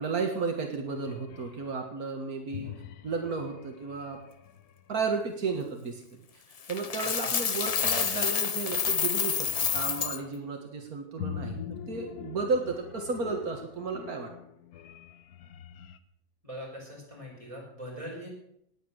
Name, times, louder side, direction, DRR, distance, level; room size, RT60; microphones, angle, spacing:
voice 1, 0.0-2.7 3.0-4.2 4.9-6.0 6.3-6.4 6.7-14.3, right 4 dB, 80° right, 3 dB, 2.2 m, -33 dB
sound 1, 0.9-1.7 2.5-5.2 6.8-7.1 7.4-10.4 11.2-16.0, left 8 dB, 80° left, 1.4 m, -44 dB
Coin (dropping), 6.7-10.2, left 6 dB, 50° left, 0.4 m, -28 dB
voice 2, 7.0-7.4 16.4-18.3, equal, 20° right, -2 dB, 6.0 m, -42 dB
19.0 x 9.3 x 6.5 m, 0.74 s
omnidirectional pair, 1.6 m